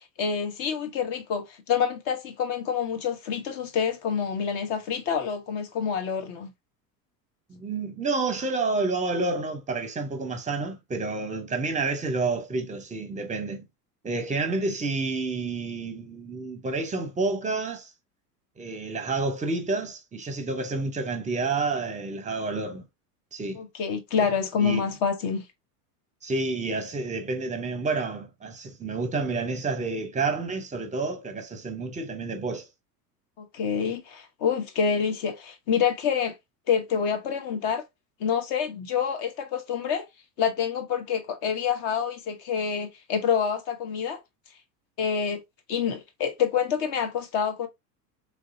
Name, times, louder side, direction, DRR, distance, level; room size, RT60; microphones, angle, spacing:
voice 1, 0.2-6.5 23.6-25.4 33.4-36.4 36.7-37.8 38.2-40.1 40.4-44.2 45.0-45.4 45.7-47.7, left 7 dB, 45° left, 0.9 m, -27 dB
voice 2, 7.5-13.6 14.0-17.9 18.6-22.8 23.3-23.6 24.2-24.3 24.6-24.9 26.2-32.7, right 3 dB, 15° right, 0.7 m, -29 dB
3.2 x 2.7 x 2.6 m
hypercardioid pair, 85°, 49 cm